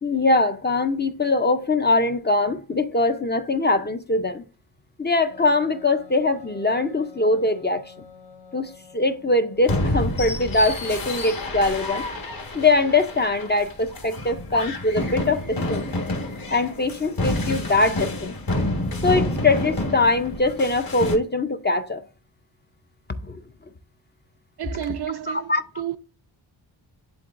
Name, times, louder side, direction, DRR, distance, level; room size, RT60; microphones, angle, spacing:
voice 1, 0.0-4.4 5.0-7.8 8.5-12.1 12.5-15.9 16.5-18.3 19.0-22.0 23.2-23.4 25.5-25.6, left 2 dB, 20° left, 0.5 m, -22 dB
Wind instrument woodwind instrument, 5.3-9.9, left 5 dB, 85° left, 2.6 m, -47 dB
sound 1, 9.6-21.2, left 1 dB, 45° left, 1.5 m, -28 dB
voice 2, 24.6-26.0, right 11 dB, 55° right, 0.5 m, -31 dB
10.5 x 3.8 x 2.5 m
wide cardioid pair, 110°, 48 cm